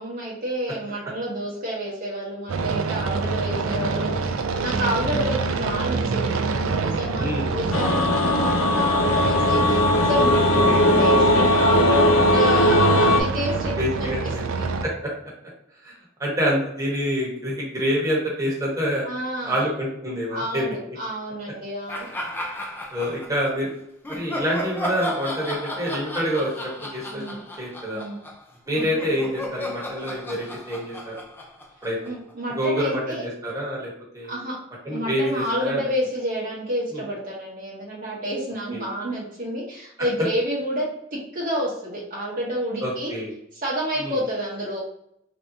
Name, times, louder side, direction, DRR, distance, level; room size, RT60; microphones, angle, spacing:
voice 1, 0.0-6.4 6.8-7.2 7.5-14.1 14.5-14.7 19.0-19.7 20.3-22.1 27.1-27.4 27.9-28.2 32.0-33.2 34.3-34.6 34.9-40.8 41.3-43.1 43.5-44.8, equal, 45° right, -5 dB, 0.8 m, -29 dB
sound 1, 2.5-14.8, right 4 dB, 90° right, 0.4 m, -26 dB
voice 2, 7.2-7.5 10.4-10.8 13.8-14.4 14.8-15.1 15.8-15.9 16.2-19.1 19.4-20.7 22.9-23.7 24.1-27.2 27.6-28.0 28.7-31.2 31.8-32.0 32.5-34.3 34.8-35.9 36.9-37.0 38.7-38.8 42.8-43.3 44.0-44.2, equal, 15° right, -5 dB, 1.0 m, -27 dB
sound 2, 7.7-13.2, left 1 dB, 85° left, 0.5 m, -19 dB
sound 3, 21.9-23.5 24.0-32.3, left 1 dB, 10° left, 0.4 m, -34 dB
3.3 x 2.7 x 2.6 m, 0.74 s
head